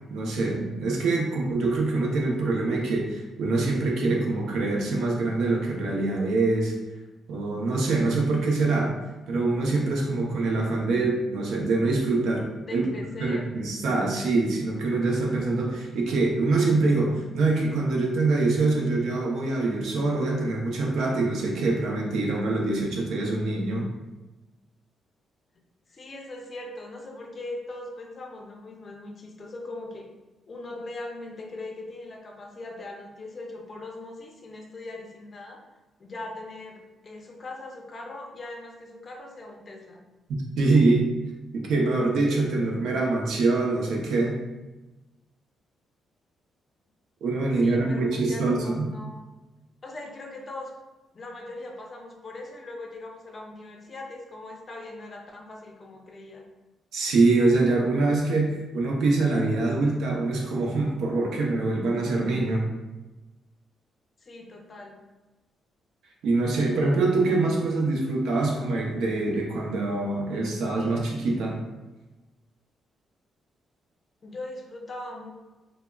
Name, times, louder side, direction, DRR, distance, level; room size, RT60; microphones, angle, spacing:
voice 1, 0.1-6.7 7.3-8.9 9.3-12.9 13.2-23.9 40.6-41.1 41.5-44.4 47.2-48.9 56.9-62.7 66.2-71.6, right 3 dB, 80° right, -1 dB, 0.6 m, -24 dB
voice 2, 12.7-13.5 25.9-30.1 30.5-35.6 36.0-40.0 47.6-49.2 49.8-50.7 51.1-56.4 64.2-65.0 74.2-75.3, left 2 dB, 35° left, 1 dB, 0.4 m, -40 dB
3.5 x 2.0 x 2.2 m, 1.1 s
cardioid pair, 105°, 0 cm